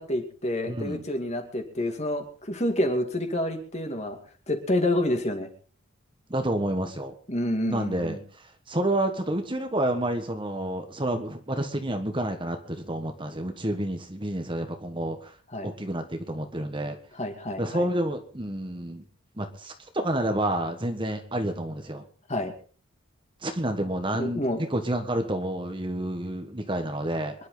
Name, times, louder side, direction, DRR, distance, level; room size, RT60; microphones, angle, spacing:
voice 1, 0.0-4.2 4.5-5.5 7.3-8.2 15.5-15.7 17.1-17.9 22.3-22.5 24.1-24.6, left 1 dB, 30° left, 5 dB, 2.5 m, -28 dB
voice 2, 0.7-1.0 6.3-7.1 7.7-15.3 15.6-17.0 17.6-19.0 19.4-22.0 23.4-24.4 24.7-27.3, right 1 dB, 20° right, 6 dB, 1.5 m, -29 dB
25.5 x 11.5 x 4.0 m, 0.41 s
head